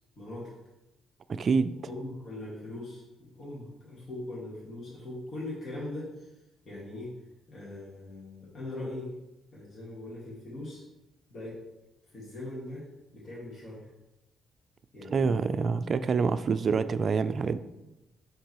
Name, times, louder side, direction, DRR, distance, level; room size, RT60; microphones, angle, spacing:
voice 1, 0.2-0.5 1.6-6.3 6.6-7.1 7.5-9.1 9.5-10.8 11.3-11.6 12.0-12.9 13.1-13.9 14.9-15.7 16.7-16.9, left 1 dB, 40° left, -8 dB, 2.2 m, -41 dB
voice 2, 1.3-1.7 15.1-17.6, right 5 dB, 45° right, 13 dB, 0.3 m, -26 dB
5.7 x 3.7 x 4.6 m, 0.96 s
cardioid pair, 90°, 0 cm